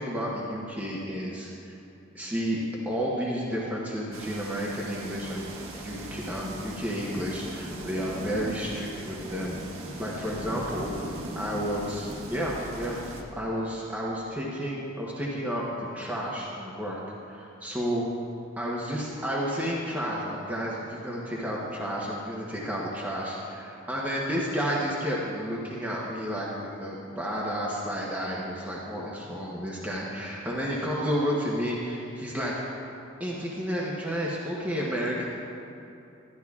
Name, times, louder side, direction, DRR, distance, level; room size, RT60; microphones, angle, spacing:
voice 1, 0.0-1.8 2.1-2.6 2.8-9.6 10.0-10.9 11.3-13.0 13.3-17.0 17.3-18.0 18.6-32.6 33.2-35.2, equal, 10° right, -6 dB, 0.8 m, -31 dB
sound 1, 4.1-13.2, right 1 dB, 85° right, 1.0 m, -39 dB
12.0 x 11.0 x 2.4 m, 2.8 s
head